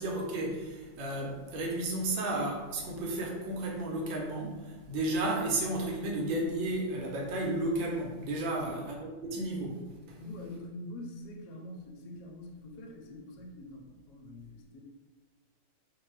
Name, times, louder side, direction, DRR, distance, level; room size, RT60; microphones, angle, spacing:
voice 1, 0.0-9.8 10.1-10.2, right 2 dB, 85° right, -1 dB, 1.4 m, -33 dB
voice 2, 8.5-8.9 10.2-14.8, left 1 dB, 70° left, 0 dB, 1.1 m, -45 dB
3.1 x 2.2 x 3.1 m, 1.2 s
omnidirectional pair, 2.0 m